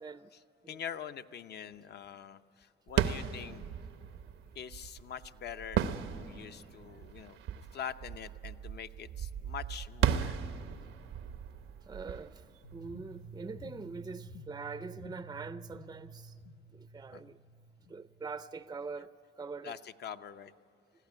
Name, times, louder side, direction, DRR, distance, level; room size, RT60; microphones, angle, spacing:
voice 1, 0.0-0.3 0.6-0.8 11.8-16.4 16.7-17.4 17.9-19.1 19.4-19.8, right 4 dB, 20° right, 0.5 m, -43 dB
voice 2, 0.7-3.7 4.5-7.4 7.7-10.4 17.1-17.2 19.6-20.5, left 8 dB, 55° left, 0.8 m, -44 dB
sound 1, 2.9-13.5, right 9 dB, 90° right, 0.9 m, -36 dB
sound 2, 12.6-18.6, right 1 dB, 90° left, 1.0 m, -51 dB
21.0 x 15.5 x 9.6 m
cardioid pair, 90°, 20 cm